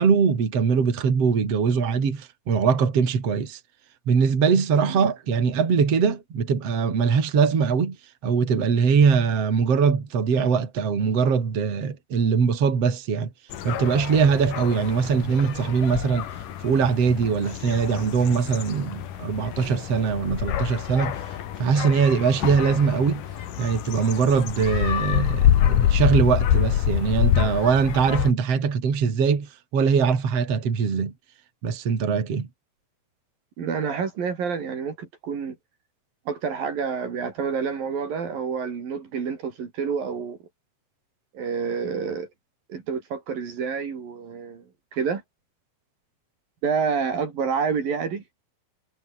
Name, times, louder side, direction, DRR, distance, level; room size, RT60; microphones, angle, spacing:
voice 1, 0.0-3.6 4.1-8.0 8.2-13.3 13.6-16.3 16.6-21.2 21.6-23.2 23.6-31.1 31.6-32.5, right 6 dB, 40° right, 4.1 m, -22 dB
sound 1, 13.5-28.3, left 11 dB, 60° left, 3.0 m, -26 dB
voice 2, 33.6-35.6 36.3-40.4 41.3-42.3 42.7-44.6 44.9-45.2 46.6-48.2, right 6 dB, 60° right, 5.0 m, -28 dB
omnidirectional pair, 4.8 m